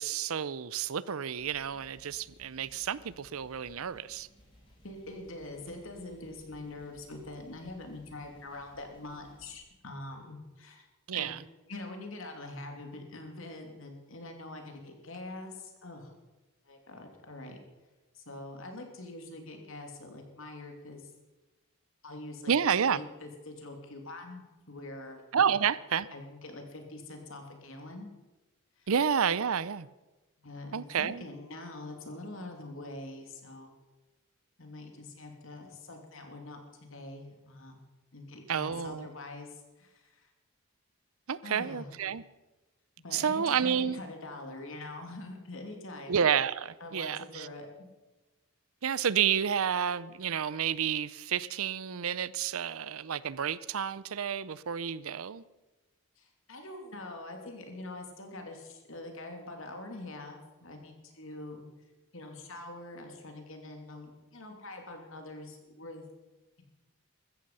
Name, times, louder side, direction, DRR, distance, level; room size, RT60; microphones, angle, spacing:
voice 1, 0.0-4.3 11.1-11.4 22.5-23.0 25.3-26.1 28.9-29.9 30.7-31.2 38.5-39.1 41.3-42.2 43.1-44.0 46.1-47.5 48.8-55.4, right 7 dB, 80° right, 0.6 m, -30 dB
sound 1, 1.3-9.6, equal, 20° left, 5.1 m, -60 dB
voice 2, 4.8-10.9 11.1-11.3 11.7-16.1 16.6-17.6 18.1-21.1 22.0-22.5 22.9-25.2 26.1-28.1 28.8-28.9 30.4-33.7 34.6-36.6 36.9-37.8 38.1-40.3 41.4-41.9 43.0-46.1 46.8-47.9 56.2-61.7 62.1-66.0, left 2 dB, 70° left, 2.9 m, -44 dB
15.5 x 14.0 x 5.6 m
head